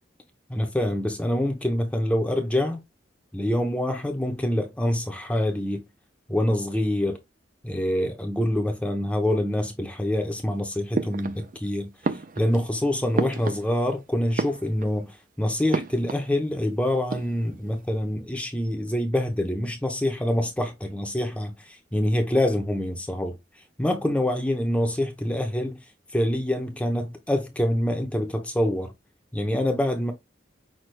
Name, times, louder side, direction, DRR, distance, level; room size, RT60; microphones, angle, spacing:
voice 1, 0.5-2.8 3.3-5.8 6.3-7.2 7.6-11.9 12.4-23.4 23.8-25.8 26.1-28.9 29.3-30.1, left 1 dB, 5° left, 0.7 m, -26 dB
sound 1, 10.9-11.7 12.0-14.0 14.3-15.1 15.7-16.3 16.6-16.7 16.9-17.7, right 3 dB, 45° right, 0.4 m, -31 dB
6.1 x 2.3 x 3.2 m
head